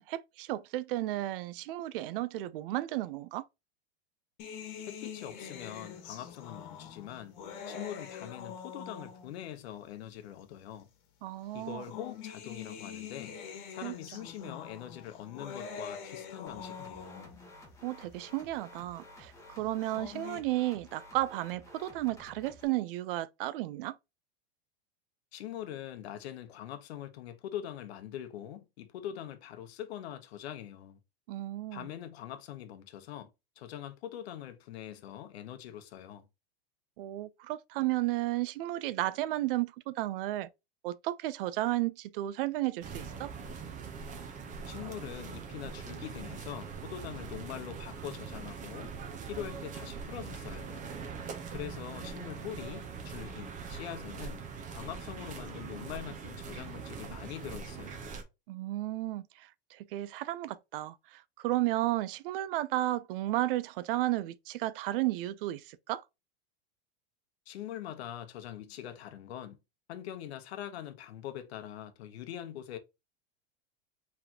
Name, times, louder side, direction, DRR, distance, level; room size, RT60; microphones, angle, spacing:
voice 1, 0.0-3.5 11.2-11.8 13.8-13.9 14.4-14.5 17.8-24.0 31.3-31.9 37.0-40.5 40.8-43.3 58.5-66.0, right 16 dB, 60° right, 0.5 m, -33 dB
sound 1, 4.4-9.5 10.4-10.5 11.6-17.5 19.6-20.4, left 7 dB, 55° left, 1.3 m, -44 dB
voice 2, 4.9-7.4 7.7-10.9 11.5-13.4 13.7-17.3 25.3-31.0 31.7-33.3 33.6-36.3 44.7-48.9 49.2-50.9 51.5-54.4 54.7-58.2 67.5-69.6 69.9-72.8, left 11 dB, 80° left, 1.0 m, -43 dB
sound 2, 16.5-22.7, left 1 dB, 10° left, 1.1 m, -53 dB
sound 3, 42.8-58.2, right 5 dB, 25° right, 0.9 m, -42 dB
4.5 x 3.4 x 2.8 m
supercardioid pair, 145°, 32 cm